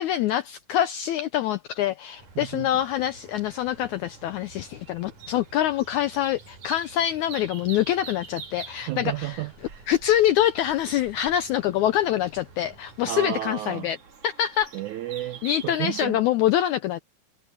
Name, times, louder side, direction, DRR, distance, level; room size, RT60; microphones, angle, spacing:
voice 1, 0.0-9.4 9.9-14.0 14.2-14.7 15.4-17.0, left 11 dB, 90° left, 1.7 m, -25 dB
sound 1, 2.1-16.1, right 6 dB, 40° right, 3.7 m, -47 dB
sound 2, 2.2-13.1, right 3 dB, 60° right, 6.6 m, -52 dB
voice 2, 2.4-2.7 8.8-9.9 13.1-13.9 14.7-16.2, right 15 dB, 85° right, 1.7 m, -32 dB
omnidirectional pair, 4.1 m